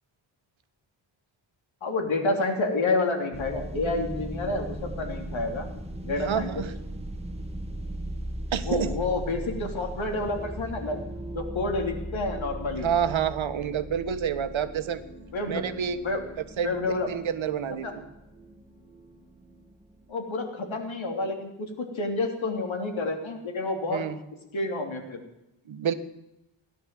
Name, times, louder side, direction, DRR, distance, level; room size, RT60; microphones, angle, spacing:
voice 1, 1.8-5.7 6.0-6.6 8.6-11.0 11.3-12.9 15.3-15.6 16.0-16.2 16.6-17.1 17.8-17.9 20.1-24.0 24.5-25.2, left 2 dB, 70° left, 4 dB, 3.2 m, -29 dB
sound 1, 3.3-20.1, right 1 dB, 15° right, 1.5 m, -38 dB
voice 2, 6.2-6.7 8.5-8.9 12.8-15.0 15.5-16.0 16.6-16.7 17.1-18.0 23.9-24.2 25.7-25.9, right 8 dB, 75° right, 10 dB, 1.3 m, -28 dB
17.0 x 11.0 x 7.6 m, 0.90 s
wide cardioid pair, 150°, 48 cm